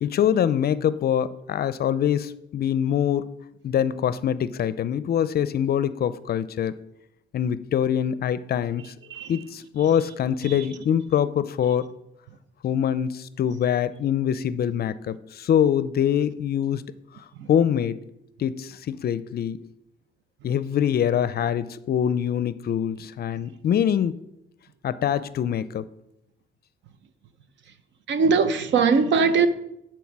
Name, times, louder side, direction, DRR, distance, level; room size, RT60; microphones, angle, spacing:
voice 1, 0.0-3.3 3.6-6.8 7.3-8.9 9.3-11.9 12.6-16.8 17.5-18.0 18.4-19.6 20.4-24.2 24.8-25.9, left 9 dB, 50° left, 0.4 m, -24 dB
voice 2, 28.1-29.5, right 5 dB, 65° right, 0.7 m, -20 dB
11.0 x 4.6 x 4.7 m
cardioid pair, 90°, 20 cm